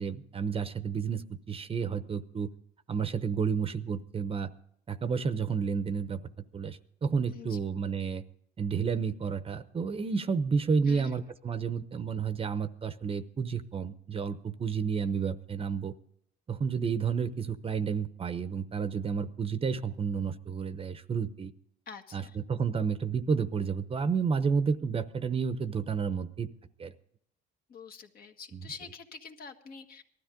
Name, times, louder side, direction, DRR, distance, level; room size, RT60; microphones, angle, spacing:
voice 1, 0.0-2.5 2.9-4.5 4.9-6.2 6.5-8.2 8.6-15.9 16.5-21.5 22.1-22.2 22.5-26.5 26.8-26.9 28.5-28.6, right 6 dB, 30° right, 11 dB, 0.9 m, -31 dB
voice 2, 10.8-11.2 21.9-22.4 27.7-30.0, left 5 dB, 50° left, 4 dB, 1.8 m, -46 dB
19.0 x 13.0 x 3.8 m, 0.69 s
cardioid pair, 115°, 19 cm